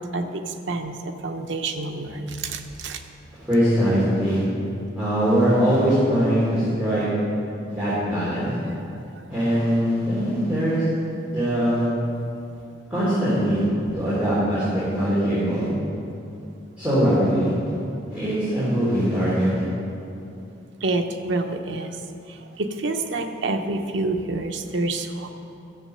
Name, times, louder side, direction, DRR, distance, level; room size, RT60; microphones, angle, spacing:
voice 1, 0.0-3.0 9.1-9.2 20.8-22.0 22.3-25.3, right 2 dB, 75° right, 5 dB, 0.8 m, -28 dB
voice 2, 3.5-4.4 4.9-7.0 7.7-8.5 9.3-10.8 11.3-11.9 12.9-13.6 13.9-15.7 16.8-17.5 18.1-19.5, equal, 5° right, -13 dB, 3.3 m, -21 dB
12.5 x 7.5 x 6.6 m, 2.7 s
head